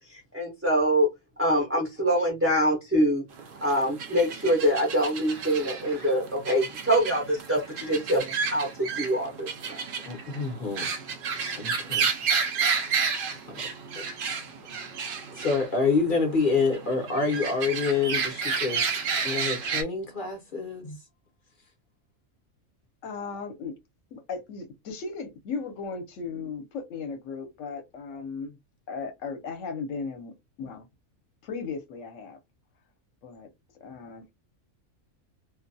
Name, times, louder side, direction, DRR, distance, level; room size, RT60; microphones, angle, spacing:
voice 1, 0.1-1.1 1.4-3.2 3.6-8.7 8.9-9.8, equal, 20° right, 0.4 m, -25 dB
sound 1, 3.3-19.8, right 5 dB, 80° right, 0.4 m, -31 dB
voice 2, 10.0-10.9 11.5-12.1 13.5-13.6 14.0-14.1 15.3-18.9 19.2-21.0, left 4 dB, 45° left, 0.7 m, -27 dB
voice 3, 23.0-23.7 24.1-28.6 28.9-30.8 31.4-32.4 33.2-33.5 33.8-34.3, left 5 dB, 65° left, 1.0 m, -36 dB
2.5 x 2.2 x 2.6 m
omnidirectional pair, 1.5 m